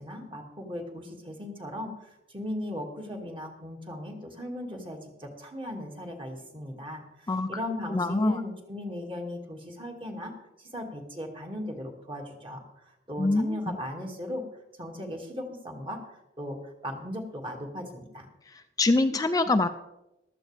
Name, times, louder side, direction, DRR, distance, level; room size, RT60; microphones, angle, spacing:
voice 1, 0.0-14.4 14.8-16.0 16.4-18.3, left 1 dB, 30° right, 2 dB, 2.1 m, -37 dB
voice 2, 7.9-8.4 13.2-13.8 18.5-19.7, left 2 dB, 20° left, 8 dB, 0.4 m, -25 dB
14.5 x 13.0 x 3.4 m, 0.92 s
head